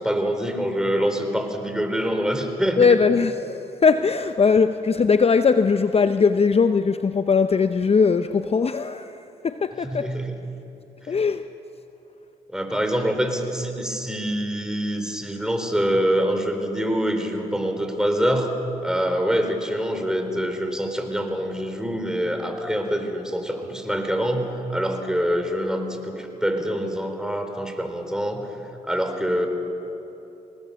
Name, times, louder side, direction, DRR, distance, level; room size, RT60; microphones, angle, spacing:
voice 1, 0.0-2.9 9.8-10.4 12.5-18.5 18.8-28.5 28.8-29.5, equal, 5° right, 4.0 m, -25 dB
voice 2, 2.8-10.2 11.1-11.5, left 5 dB, 40° left, 0.7 m, -20 dB
24.5 x 19.0 x 7.0 m
supercardioid pair, 50°, 16 cm